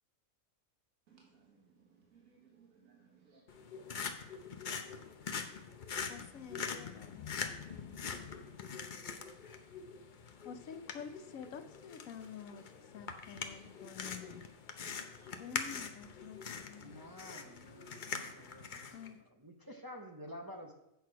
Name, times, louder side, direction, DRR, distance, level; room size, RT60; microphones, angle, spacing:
voice 1, 1.1-3.4, right 6 dB, 75° right, -2 dB, 1.9 m, -64 dB
sound 1, 3.5-19.1, left 6 dB, 45° left, 0.6 m, -43 dB
voice 2, 6.0-7.3 10.4-14.4 15.4-16.9 18.9-19.2, left 7 dB, 75° left, 10 dB, 1.1 m, -49 dB
voice 3, 16.8-20.7, equal, 25° right, 2 dB, 0.5 m, -50 dB
8.1 x 6.4 x 4.7 m, 0.85 s
omnidirectional pair, 1.5 m